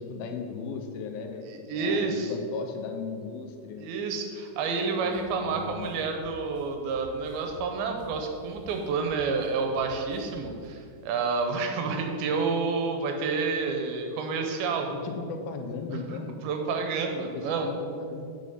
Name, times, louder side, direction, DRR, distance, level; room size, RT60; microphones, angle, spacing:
voice 1, 0.0-3.8 5.0-5.1 5.4-6.0 14.9-16.4 17.3-18.3, left 4 dB, 90° left, 4 dB, 2.6 m, -37 dB
voice 2, 1.5-2.3 3.8-14.9 15.9-16.2 16.4-17.7, right 4 dB, 80° right, 4 dB, 2.7 m, -29 dB
sound 1, 5.1-5.3 5.6-8.1 8.5-10.6, left 1 dB, 50° left, 0.8 m, -51 dB
7.0 x 6.0 x 5.4 m, 2.4 s
omnidirectional pair, 4.3 m